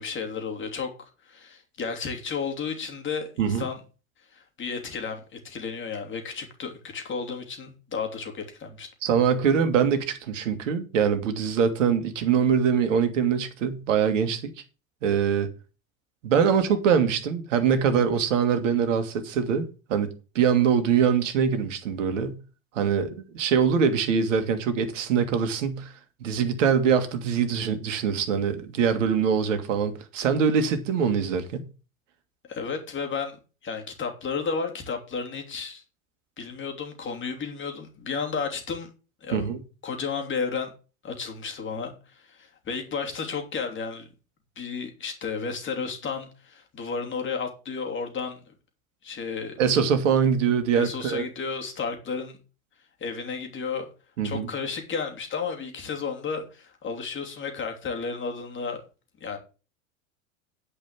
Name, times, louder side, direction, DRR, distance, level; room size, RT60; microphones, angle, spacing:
voice 1, 0.0-3.8 4.3-8.9 32.5-35.8 36.4-38.9 39.2-39.5 39.8-40.7 41.0-44.1 44.6-48.4 49.0-49.6 50.7-52.4 53.0-53.9 54.2-58.8 59.2-59.4, left 5 dB, 30° left, 3.1 m, -33 dB
voice 2, 9.0-14.5 15.0-15.5 16.2-22.4 22.8-25.9 26.2-31.7 39.3-39.6 49.6-51.3 54.2-54.5, right 7 dB, 65° right, 2.0 m, -23 dB
10.0 x 5.4 x 7.4 m
figure-of-eight pair, 85°, 41 cm